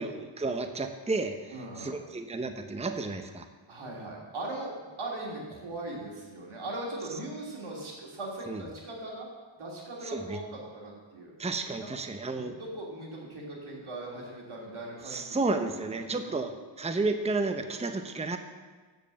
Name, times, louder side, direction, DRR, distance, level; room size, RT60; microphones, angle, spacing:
voice 1, 0.0-3.5 8.5-8.6 10.0-10.4 11.4-12.6 15.1-18.4, right 3 dB, 15° right, 7 dB, 0.7 m, -32 dB
voice 2, 1.5-2.0 3.7-9.3 9.6-11.3 11.8-12.0 12.3-15.4 16.0-16.4, right 2 dB, 90° right, -3 dB, 3.2 m, -39 dB
13.5 x 5.4 x 7.5 m, 1.4 s
wide cardioid pair, 100°, 48 cm